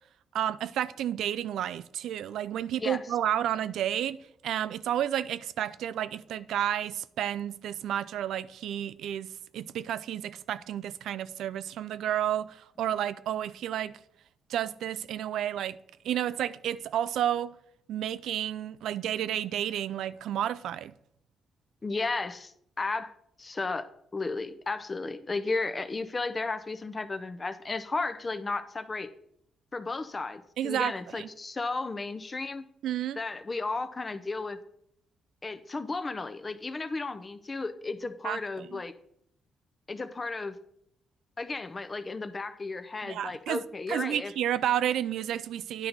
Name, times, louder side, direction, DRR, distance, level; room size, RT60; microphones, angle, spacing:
voice 1, 0.3-4.2 4.4-9.3 9.5-14.0 14.5-15.8 16.0-17.5 17.9-20.9 30.6-31.3 32.8-33.2 38.2-38.8 43.0-43.6 43.9-45.9, right 11 dB, 80° right, 0.3 m, -31 dB
voice 2, 21.8-23.9 24.1-29.1 29.7-32.6 33.2-34.6 35.4-38.9 39.9-40.6 41.4-44.3, left 3 dB, 25° left, 0.6 m, -34 dB
10.5 x 4.4 x 4.0 m
cardioid pair, 100°, 0 cm